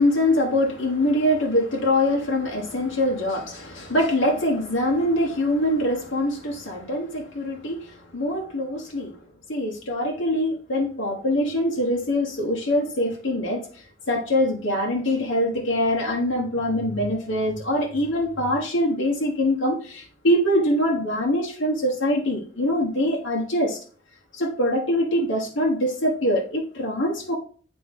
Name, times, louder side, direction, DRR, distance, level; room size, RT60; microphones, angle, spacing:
voice 1, 0.0-9.1 9.5-13.7 14.1-23.8 24.3-27.3, left 1 dB, 70° left, 1.4 m, -23 dB
8.3 x 3.6 x 3.7 m
head